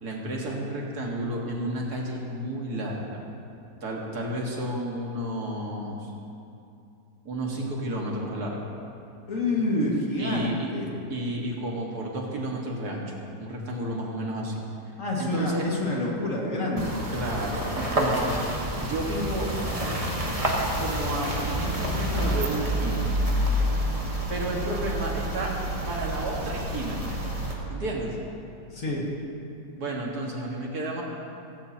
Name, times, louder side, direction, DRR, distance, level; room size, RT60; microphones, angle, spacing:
voice 1, 0.0-3.2 3.8-6.1 7.3-8.7 10.2-10.7 11.1-14.6 15.2-15.7 17.1-18.4 18.8-19.5 20.8-23.1 24.3-25.5 25.9-27.0 27.7-28.2 29.8-31.0, right 1 dB, 60° right, -2 dB, 2.2 m, -31 dB
voice 2, 9.3-10.9 15.0-16.9 28.7-29.1, left 1 dB, 50° left, -3 dB, 2.4 m, -27 dB
sound 1, 16.8-27.5, equal, 20° right, 1.4 m, -28 dB
16.0 x 16.0 x 2.9 m, 2.6 s
omnidirectional pair, 1.9 m